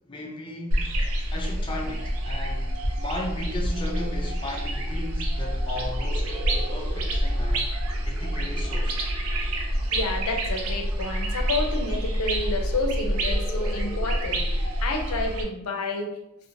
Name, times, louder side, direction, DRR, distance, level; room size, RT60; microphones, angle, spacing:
voice 1, 0.1-1.0 1.3-7.7 8.1-9.1, left 2 dB, 20° left, 0.3 m, -36 dB
sound 1, 0.7-15.4, right 1 dB, 80° right, 0.5 m, -27 dB
voice 2, 9.9-16.1, left 3 dB, 80° left, 0.5 m, -30 dB
2.8 x 2.1 x 2.5 m
head